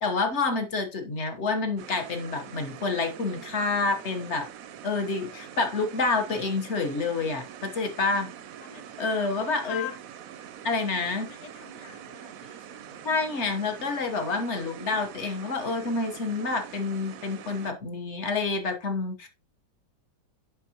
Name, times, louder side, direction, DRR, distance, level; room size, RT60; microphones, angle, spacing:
voice 1, 0.0-4.5 4.8-8.3 9.0-9.9 10.6-11.3 13.0-19.3, left 3 dB, 45° left, 1.2 m, -28 dB
sound 1, 1.8-17.7, right 9 dB, 70° right, 0.9 m, -44 dB
voice 2, 8.6-10.0 11.2-13.1, left 12 dB, 80° left, 0.3 m, -43 dB
7.3 x 5.5 x 2.9 m
omnidirectional pair, 1.9 m